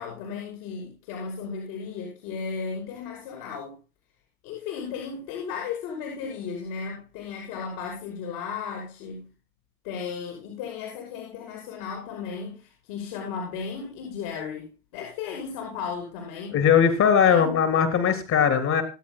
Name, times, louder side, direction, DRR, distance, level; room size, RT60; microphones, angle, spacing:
voice 1, 0.0-3.8 4.4-9.3 9.8-16.6 17.2-17.5, left 6 dB, 60° left, 0 dB, 6.0 m, -35 dB
voice 2, 16.5-18.8, left 7 dB, 35° left, 7 dB, 3.4 m, -20 dB
25.5 x 8.5 x 2.3 m, 0.31 s
hypercardioid pair, 110°, 45 cm